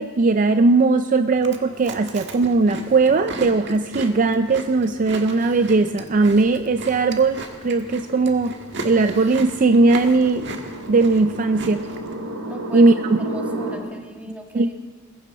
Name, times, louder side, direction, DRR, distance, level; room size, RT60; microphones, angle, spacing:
voice 1, 0.0-8.5 8.8-10.5 10.9-11.8 12.7-12.9 14.5-14.7, right 3 dB, 40° right, 9 dB, 0.4 m, -18 dB
Chewing mastication, 1.3-12.1, right 2 dB, 55° right, 1.6 m, -36 dB
sound 1, 1.5-7.5, equal, 65° left, 2.6 m, -51 dB
sound 2, 5.9-13.8, right 1 dB, 80° right, 2.3 m, -34 dB
voice 2, 12.5-12.9 13.2-14.7, right 1 dB, 5° right, 2 dB, 1.6 m, -38 dB
21.0 x 16.0 x 4.2 m, 1.4 s
head